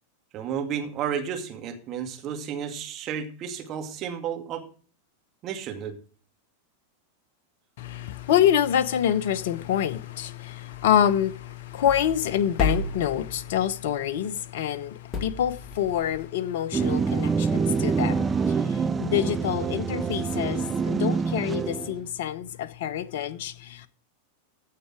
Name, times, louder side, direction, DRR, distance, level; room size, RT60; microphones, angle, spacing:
voice 1, 0.3-4.6 5.4-6.0, right 8 dB, 35° right, 2.3 m, -32 dB
voice 2, 7.8-23.9, left 10 dB, 55° left, 0.9 m, -26 dB
sound 1, 10.7-13.9 15.1-16.2, left 3 dB, 25° left, 2.3 m, -34 dB
sound 2, 16.7-22.0, right 5 dB, 20° right, 0.5 m, -26 dB
15.5 x 6.7 x 4.9 m
figure-of-eight pair, 90°, 0 cm